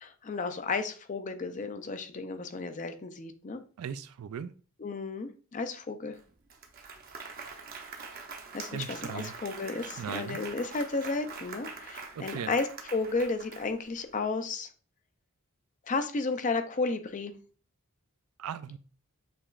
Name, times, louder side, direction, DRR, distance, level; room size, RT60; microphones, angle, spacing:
voice 1, 0.0-3.6 4.8-6.2 8.5-14.7 15.9-17.3, left 3 dB, 35° left, 9 dB, 0.4 m, -33 dB
voice 2, 3.8-4.5 8.7-9.3 10.0-10.4 12.2-12.5 18.4-18.8, right 7 dB, 75° right, 13 dB, 0.3 m, -38 dB
Applause, 6.1-6.2 6.5-14.0, right 5 dB, 45° right, 0.7 m, -44 dB
6.8 x 2.9 x 2.4 m, 0.40 s
head